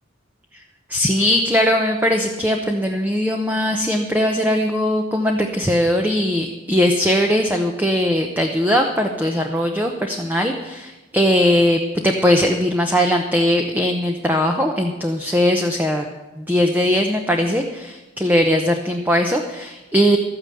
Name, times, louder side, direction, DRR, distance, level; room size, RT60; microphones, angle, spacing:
voice 1, 0.9-16.1 16.4-20.2, equal, 10° right, 3 dB, 0.8 m, -19 dB
13.0 x 9.7 x 6.8 m, 1.1 s
head